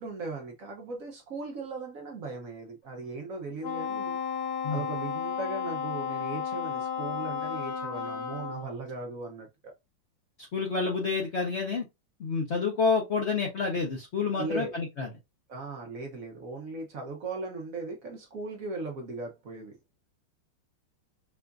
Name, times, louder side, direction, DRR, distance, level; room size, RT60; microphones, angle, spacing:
voice 1, 0.0-4.2 4.7-9.7 14.3-14.7 15.5-19.8, right 3 dB, 60° right, 0.9 m, -38 dB
Wind instrument woodwind instrument, 3.6-8.7, left 7 dB, 55° left, 1.3 m, -33 dB
voice 2, 10.5-11.8 12.2-15.1, left 4 dB, 75° left, 0.6 m, -28 dB
4.8 x 2.5 x 2.2 m
omnidirectional pair, 2.3 m